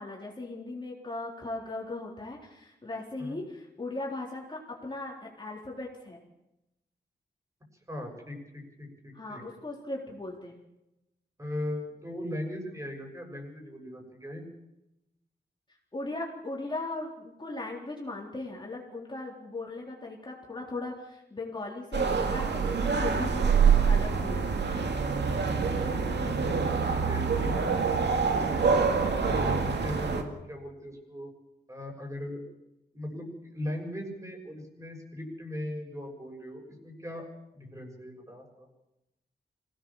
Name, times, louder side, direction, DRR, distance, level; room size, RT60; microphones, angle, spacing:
voice 1, 0.0-6.2 9.1-10.6 15.9-24.5, left 2 dB, 25° left, -3 dB, 4.0 m, -38 dB
voice 2, 7.9-9.4 11.4-14.4 26.6-28.5 29.2-31.3 31.7-32.5 32.9-37.3 37.5-38.7, left 1 dB, 15° right, 1 dB, 6.8 m, -39 dB
sound 1, 21.9-30.2, right 5 dB, 80° right, 2.4 m, -26 dB
25.5 x 17.5 x 7.3 m, 0.91 s
wide cardioid pair, 110°, 18 cm